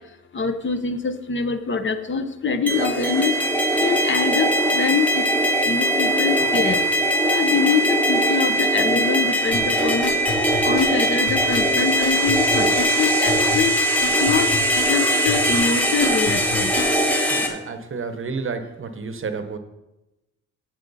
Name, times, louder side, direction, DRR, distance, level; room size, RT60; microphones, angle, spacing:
voice 1, 0.3-3.3 3.8-5.2 5.7-6.9 7.3-10.1 10.6-13.8 14.2-14.5 14.9-16.7, left 5 dB, 35° left, 9 dB, 0.7 m, -24 dB
sound 1, 2.7-17.5, right 1 dB, 5° left, 1.1 m, -21 dB
sound 2, 9.5-17.0 17.5-17.6, left 5 dB, 80° left, 3.0 m, -30 dB
voice 2, 17.3-19.6, right 4 dB, 40° right, 8 dB, 0.8 m, -30 dB
15.5 x 6.3 x 4.0 m, 0.99 s
wide cardioid pair, 175°, 32 cm